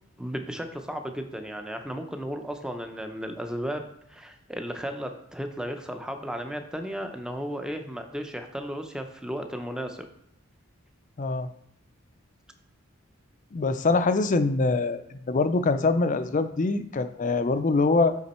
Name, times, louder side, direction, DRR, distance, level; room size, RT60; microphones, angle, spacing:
voice 1, 0.2-10.1, equal, 5° right, 6 dB, 0.6 m, -34 dB
voice 2, 11.2-11.5 13.5-18.1, left 3 dB, 40° left, 11 dB, 0.5 m, -24 dB
9.4 x 3.8 x 4.3 m, 0.75 s
head